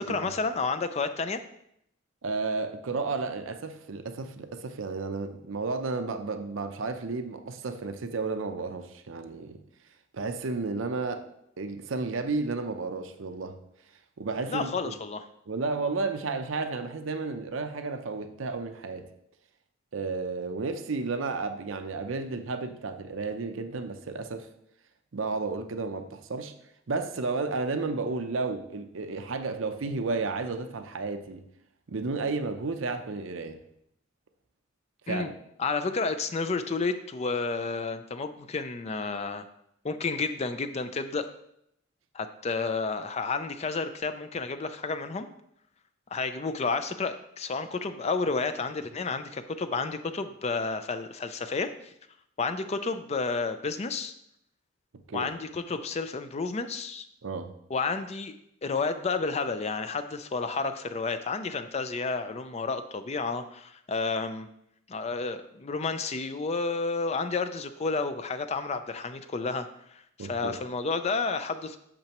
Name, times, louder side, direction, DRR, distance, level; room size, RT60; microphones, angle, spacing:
voice 1, 0.1-1.4 14.5-15.2 35.1-35.3 35.6-39.5 39.8-41.3 42.1-45.3 46.1-51.9 52.4-54.1 55.1-57.0 57.7-58.3 58.6-64.5 64.9-71.8, left 4 dB, 35° left, 10 dB, 0.4 m, -31 dB
voice 2, 2.2-9.6 10.1-11.2 11.6-13.6 14.2-15.0 15.5-19.1 19.9-24.5 25.1-26.5 26.9-31.4 31.9-33.6 35.1-35.3 55.1-55.3 57.2-57.5 70.2-70.6, right 3 dB, 80° right, 8 dB, 0.6 m, -32 dB
8.7 x 6.6 x 3.0 m, 0.76 s
head